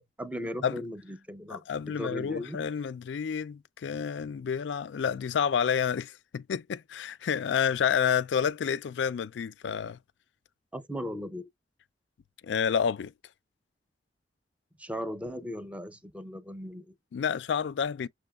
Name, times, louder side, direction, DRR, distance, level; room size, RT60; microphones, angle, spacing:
voice 1, 0.0-2.6 10.7-11.5 14.8-16.9, equal, 10° right, 0.5 m, -37 dB
voice 2, 1.5-10.0 12.4-13.1 17.1-18.1, left 7 dB, 85° left, 0.4 m, -29 dB
6.2 x 3.5 x 2.3 m
head